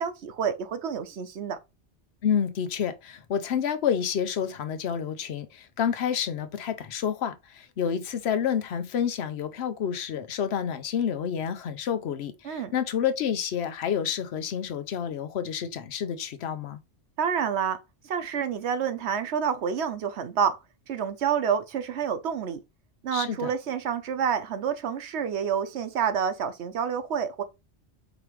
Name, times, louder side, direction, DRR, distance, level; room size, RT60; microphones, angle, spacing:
voice 1, 0.0-1.6 12.4-12.7 17.2-17.8 18.0-20.6 20.9-22.6 23.0-27.4, right 7 dB, 75° right, 1.0 m, -28 dB
voice 2, 2.2-16.8 23.1-23.5, left 8 dB, 70° left, 0.9 m, -29 dB
5.0 x 3.2 x 3.0 m
omnidirectional pair, 1.1 m